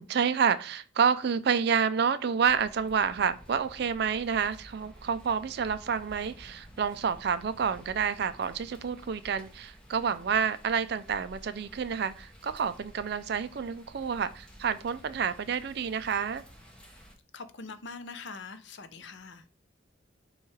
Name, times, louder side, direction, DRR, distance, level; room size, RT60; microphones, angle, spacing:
voice 1, 0.0-16.4, right 6 dB, 55° right, 0.4 m, -29 dB
sound 1, 2.4-17.1, equal, 5° left, 0.8 m, -52 dB
voice 2, 17.3-19.4, left 4 dB, 65° left, 0.6 m, -43 dB
7.0 x 2.4 x 3.2 m
head